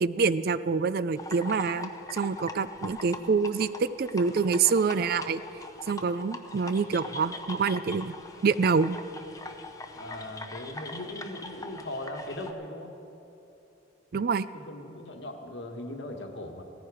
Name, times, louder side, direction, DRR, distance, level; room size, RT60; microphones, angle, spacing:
voice 1, 0.0-5.4 5.9-8.1 8.4-9.0 14.1-14.5, right 5 dB, 50° right, 15 dB, 0.4 m, -26 dB
sound 1, 1.2-12.5, left 2 dB, 15° left, 0.7 m, -42 dB
voice 2, 9.9-12.9 14.5-16.6, left 1 dB, 65° left, 3 dB, 1.5 m, -39 dB
17.5 x 14.5 x 4.9 m, 2.9 s
head